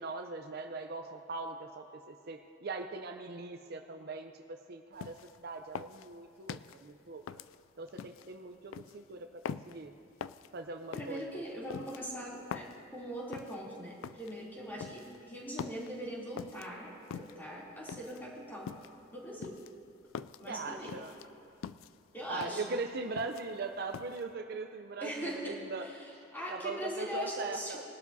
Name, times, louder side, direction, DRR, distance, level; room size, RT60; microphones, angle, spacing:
voice 1, 0.0-7.2 7.8-9.9 10.5-11.4 11.7-11.8 20.5-21.1 22.3-25.9 26.5-27.8, right 3 dB, 55° right, 5 dB, 0.6 m, -40 dB
sound 1, 5.0-5.4 5.8-6.8 7.3-8.3 8.7-9.0 9.5-9.8 10.2-10.5 10.9-11.2 11.7-12.8 13.3-13.6 14.0-14.3 14.8-15.2 15.6-15.9 16.4-16.7 17.1-17.5 17.9-18.2 18.7-19.0 19.4-20.5 20.9-21.3 21.6-21.9 22.4-22.7 23.0-23.6 23.9-24.2, left 7 dB, 85° left, 0.3 m, -43 dB
voice 2, 10.9-18.8 19.1-19.6 20.4-21.0 22.1-22.7 25.0-27.8, equal, 10° left, -6 dB, 2.9 m, -41 dB
21.0 x 12.0 x 2.7 m, 2.8 s
head